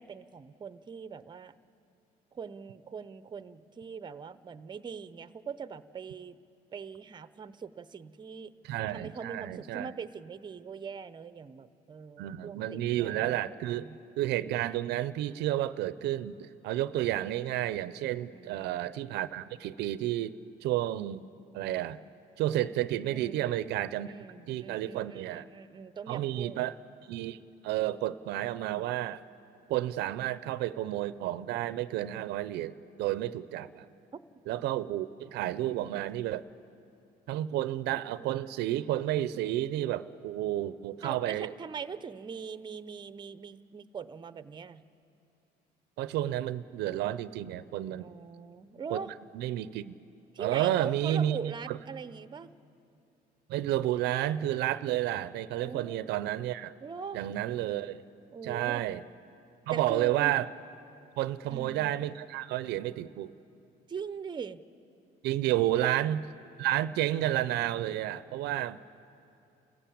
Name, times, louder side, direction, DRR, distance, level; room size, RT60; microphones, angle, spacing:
voice 1, 0.0-1.5 2.3-6.4 6.7-8.5 8.9-14.0 18.3-18.7 23.1-23.5 24.1-26.6 41.0-44.8 48.0-49.1 50.3-52.5 55.6-56.1 56.8-57.2 58.3-58.9 59.7-60.3 61.5-61.9 63.9-64.6 65.7-66.2, right 6 dB, 25° right, 14 dB, 0.7 m, -42 dB
voice 2, 8.6-9.9 12.2-13.9 14.2-20.4 20.6-21.3 21.5-22.0 22.4-24.1 24.5-25.4 26.1-26.7 27.1-27.4 27.6-29.2 29.7-33.9 34.5-36.4 37.3-41.5 46.0-48.1 48.9-49.0 49.3-49.9 50.4-51.8 53.5-56.7 57.1-58.0 58.4-59.0 59.7-60.5 61.2-63.3 65.2-66.3 66.6-68.9, right 13 dB, 85° right, 15 dB, 0.6 m, -31 dB
29.5 x 15.0 x 8.6 m, 2.8 s
cardioid pair, 110°, 17 cm